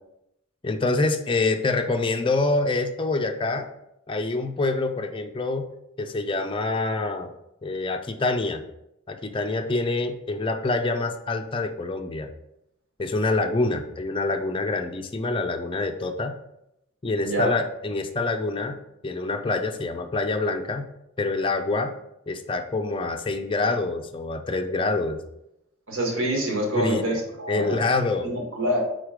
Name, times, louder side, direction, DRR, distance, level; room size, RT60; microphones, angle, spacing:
voice 1, 0.6-3.7 4.1-5.7 6.0-7.3 7.6-8.6 9.1-12.3 13.0-16.3 17.0-18.8 19.0-20.8 21.2-21.9 22.3-25.2 26.7-27.2 27.5-28.3, left 3 dB, 25° left, 5 dB, 0.4 m, -26 dB
voice 2, 17.2-17.5 25.9-27.8 28.2-28.8, equal, 65° right, 0 dB, 1.6 m, -26 dB
4.8 x 4.0 x 4.9 m, 0.83 s
head